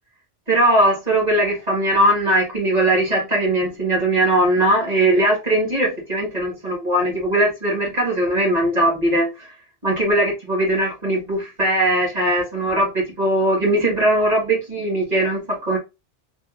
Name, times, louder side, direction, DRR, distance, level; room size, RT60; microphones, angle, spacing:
voice 1, 0.5-9.5 9.8-15.8, right 1 dB, 40° right, 1.6 m, -20 dB
3.5 x 2.5 x 2.4 m
omnidirectional pair, 1.1 m